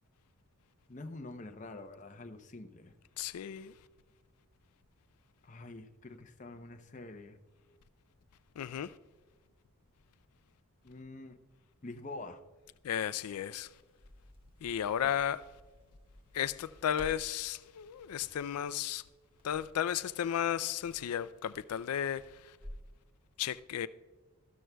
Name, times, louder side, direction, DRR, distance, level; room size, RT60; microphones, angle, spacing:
voice 1, 0.9-2.9 5.4-7.4 10.8-11.4 11.8-12.4, left 2 dB, 35° left, 0.7 m, -46 dB
voice 2, 3.2-3.7 8.6-9.0 12.8-13.7 14.6-15.5 16.3-19.0 19.4-22.6 23.4-23.9, left 9 dB, 85° left, 0.4 m, -34 dB
Crackle, 13.7-22.9, equal, 25° right, 1.6 m, -54 dB
13.5 x 12.5 x 2.3 m
head